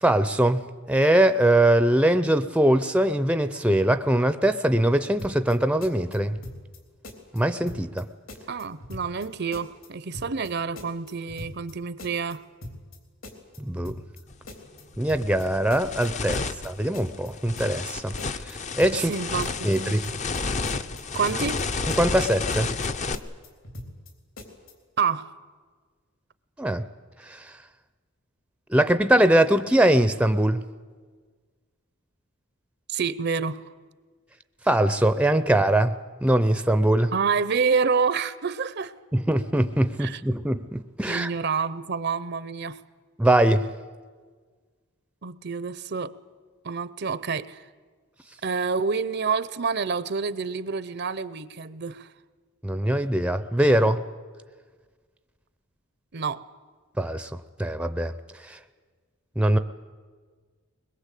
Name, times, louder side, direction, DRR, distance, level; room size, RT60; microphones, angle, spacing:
voice 1, 0.0-6.4 7.3-8.1 13.6-13.9 15.0-16.4 16.6-18.1 18.4-19.1 19.6-20.0 22.0-22.7 26.6-26.8 27.3-27.5 28.7-30.6 34.7-35.9 36.2-37.1 39.1-41.3 43.2-43.7 52.6-54.0 57.0-57.3 57.6-58.1 58.4-58.6 59.4-59.6, right 1 dB, 5° right, 0.6 m, -22 dB
sound 1, 5.2-5.6 5.8-6.8 7.0-7.4 7.7-8.0 8.3-9.3 9.5-9.9 10.1-10.5 10.8-11.7 12.0-12.4 12.6-13.0 13.2-14.2 14.5-14.8 15.1-15.4 15.7-16.7 16.9-17.3 17.6-17.9 18.2-19.2 19.4-19.8 20.0-20.4 20.7-21.6 21.9-22.3 22.5-22.9 23.1-24.1 24.4-24.7, left 1 dB, 70° left, 3.7 m, -41 dB
voice 2, 8.5-12.4 18.9-20.0 21.1-21.6 25.0-25.3 32.9-33.6 37.1-38.9 40.0-40.2 41.1-42.8 45.2-46.1 46.6-47.7 48.4-52.1 56.1-56.4, right 5 dB, 50° right, 0.7 m, -28 dB
sound 2, 14.3-14.5 14.9-23.2, left 4 dB, 35° left, 0.7 m, -31 dB
21.5 x 21.5 x 8.3 m
head